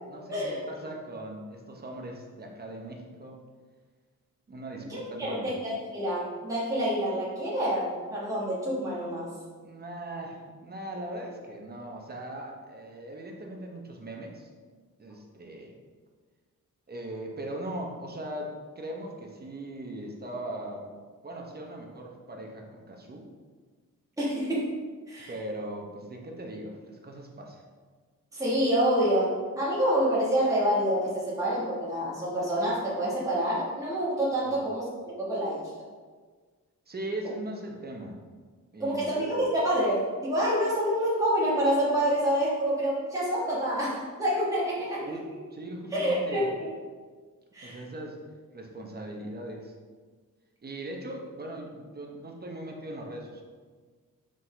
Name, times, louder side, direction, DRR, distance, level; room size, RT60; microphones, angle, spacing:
voice 1, 0.1-3.4 4.5-5.5 9.6-14.5 15.0-15.8 16.9-20.9 21.2-23.3 25.3-27.6 34.4-34.6 36.9-38.2 38.7-39.3 45.0-46.5 47.6-48.2 48.5-49.7 50.6-53.4, right 1 dB, 30° right, 1 dB, 0.8 m, -39 dB
voice 2, 4.8-9.3 24.2-24.7 25.1-25.3 28.3-35.7 38.8-45.2 45.9-46.7 47.5-47.8, equal, 10° right, -8 dB, 1.4 m, -27 dB
5.5 x 5.3 x 3.3 m, 1.5 s
wide cardioid pair, 155°, 34 cm